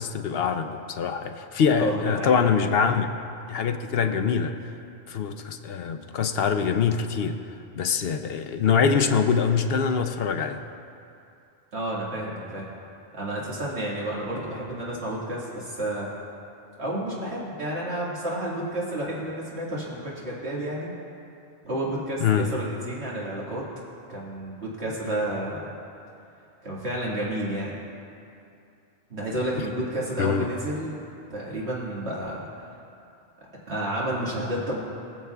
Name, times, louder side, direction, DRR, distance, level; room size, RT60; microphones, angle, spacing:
voice 1, 0.0-3.1 3.5-4.6 5.1-7.4 7.8-10.6 22.2-22.5 30.2-30.5, left 6 dB, 70° left, 7 dB, 0.8 m, -24 dB
voice 2, 1.7-2.4 11.7-12.7 13.1-16.1 16.8-20.9 21.6-23.6 24.1-25.7 26.6-27.7 29.1-31.0 31.3-32.5 33.7-34.8, right 1 dB, 75° right, -6 dB, 2.2 m, -30 dB
22.5 x 7.7 x 2.3 m, 2.6 s
omnidirectional pair, 1.1 m